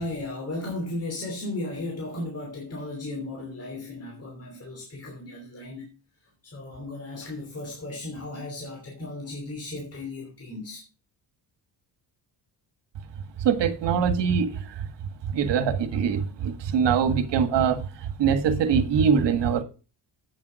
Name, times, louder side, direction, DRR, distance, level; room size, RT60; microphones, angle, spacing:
voice 1, 0.0-5.9 6.4-10.8, left 2 dB, 35° left, 3.1 m, -35 dB
voice 2, 13.4-14.5 15.3-17.8 18.2-19.6, right 7 dB, 75° right, 1.8 m, -22 dB
8.8 x 7.3 x 6.3 m
cardioid pair, 120°, 42 cm